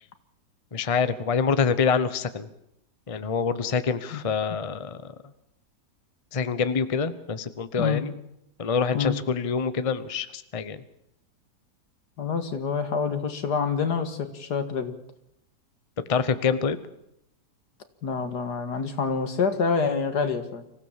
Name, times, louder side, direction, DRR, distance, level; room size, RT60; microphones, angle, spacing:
voice 1, 0.7-2.5 3.1-5.1 6.3-8.1 8.6-10.8 16.1-16.8, left 5 dB, 25° left, 12 dB, 0.8 m, -26 dB
voice 2, 12.2-14.9 18.0-20.6, left 5 dB, 75° left, 8 dB, 2.3 m, -27 dB
25.5 x 16.0 x 7.4 m, 0.79 s
omnidirectional pair, 1.8 m